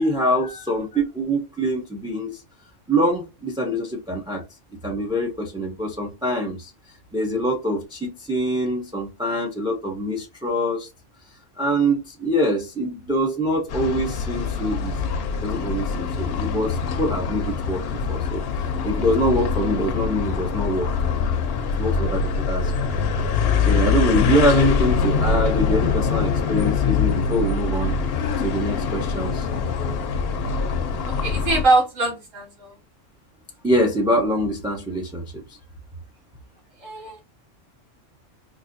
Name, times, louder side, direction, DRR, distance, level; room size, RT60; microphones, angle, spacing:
voice 1, 0.0-2.4 2.9-4.4 4.8-6.7 7.1-10.9 11.6-15.0 15.4-17.8 18.1-18.4 18.8-20.9 21.8-22.9 23.7-28.0 28.4-29.5 33.6-35.6, equal, 5° right, 0.4 m, -24 dB
sound 1, 13.7-31.6, left 5 dB, 60° left, 0.8 m, -24 dB
voice 2, 31.1-32.8 36.8-37.2, right 2 dB, 80° right, 1.8 m, -22 dB
3.9 x 2.6 x 2.6 m
omnidirectional pair, 1.3 m